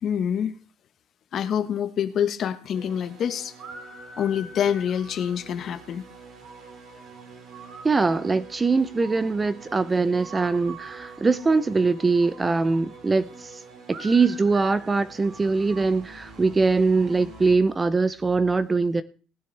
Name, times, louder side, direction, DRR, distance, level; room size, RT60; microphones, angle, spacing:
voice 1, 0.0-0.5 1.3-3.5 4.2-6.0, left 8 dB, 45° left, 11 dB, 1.2 m, -26 dB
sound 1, 2.7-17.5, right 3 dB, 45° right, 3.1 m, -44 dB
voice 2, 7.8-13.5 13.9-19.0, right 4 dB, 15° right, 15 dB, 0.6 m, -22 dB
18.0 x 9.9 x 3.3 m, 0.38 s
cardioid pair, 145°, 0 cm